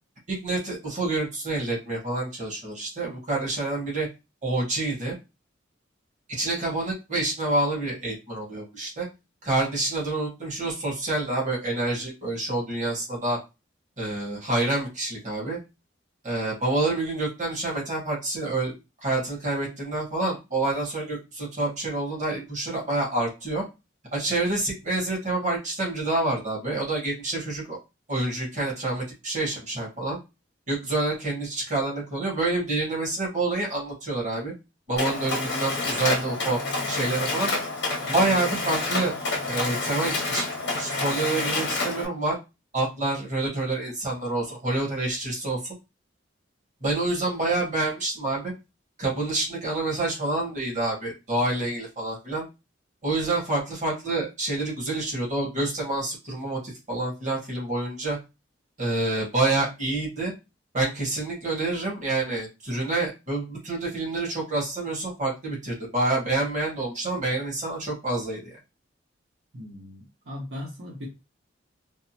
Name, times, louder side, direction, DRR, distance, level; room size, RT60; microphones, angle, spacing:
voice 1, 0.3-4.1 4.4-5.1 6.3-9.1 9.4-13.4 14.0-15.6 16.2-18.7 19.0-23.6 24.1-27.8 28.1-30.2 30.7-34.5 34.9-36.6 36.9-37.5 38.0-39.1 39.4-40.4 40.8-42.4 42.7-45.7 46.8-48.5 49.0-52.5 53.0-58.2 58.8-60.3 60.7-68.4, right 2 dB, 40° right, -3 dB, 1.5 m, -27 dB
Mechanisms, 35.0-42.1, left 3 dB, 60° left, 1.0 m, -28 dB
voice 2, 69.5-71.1, left 1 dB, 65° right, -4 dB, 0.8 m, -38 dB
3.4 x 2.0 x 2.8 m, 0.26 s
head